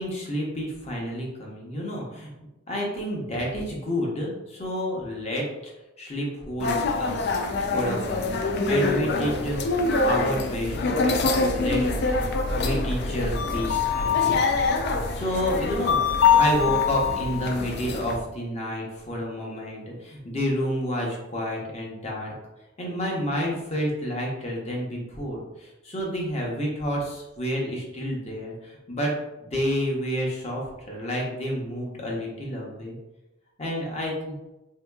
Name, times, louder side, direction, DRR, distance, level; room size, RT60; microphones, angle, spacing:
voice 1, 0.0-2.3 2.7-5.7 6.0-7.4 7.7-9.6 10.0-11.3 11.5-14.5 15.1-22.3 22.8-29.1 29.4-33.0 33.6-34.1, equal, 30° left, -2 dB, 0.8 m, -30 dB
sound 1, 6.6-18.2, left 4 dB, 55° left, 0.3 m, -24 dB
3.6 x 2.8 x 2.3 m, 0.98 s
head